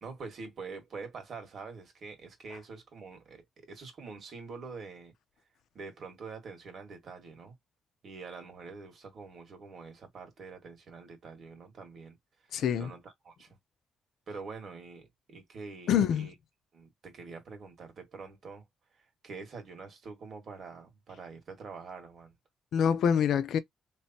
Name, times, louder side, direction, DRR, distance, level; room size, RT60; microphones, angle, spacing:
voice 1, 0.0-5.1 5.7-7.5 8.0-12.2 12.5-13.6 14.3-16.3 16.7-18.7 18.9-22.3, right 4 dB, 55° right, 1.9 m, -45 dB
voice 2, 12.5-12.9 15.9-16.3 22.7-23.6, left 8 dB, 70° left, 0.6 m, -26 dB
3.3 x 3.3 x 2.8 m
cardioid pair, 90°, 0 cm